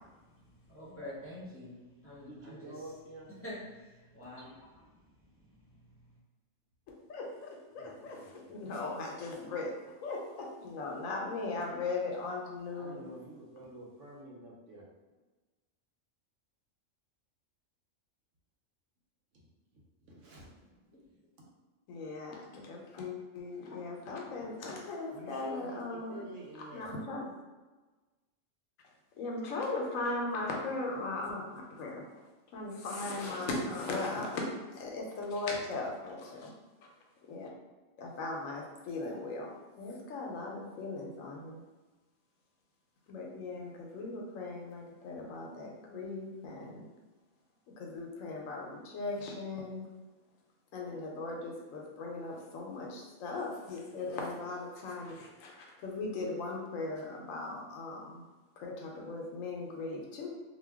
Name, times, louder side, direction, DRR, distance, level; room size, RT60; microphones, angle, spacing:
voice 1, 0.7-1.8 2.0-2.6 3.4-3.6 3.8-4.8, left 1 dB, 15° left, -8 dB, 0.6 m, -46 dB
voice 2, 2.3-3.3 7.8-8.5 12.7-14.9 19.3-20.7 21.4-21.5 25.1-26.9 35.5-35.7, right 1 dB, 70° right, -2 dB, 1.0 m, -49 dB
voice 3, 6.9-9.7 10.0-13.1 21.9-26.2 26.7-27.2 29.2-32.0 32.5-36.5 37.3-37.5 38.0-39.5 39.8-41.6 43.1-46.9 47.8-49.9 50.7-58.2 58.6-60.3, left 3 dB, 90° left, 0 dB, 1.0 m, -38 dB
2.6 x 2.2 x 3.4 m, 1.2 s
omnidirectional pair, 1.3 m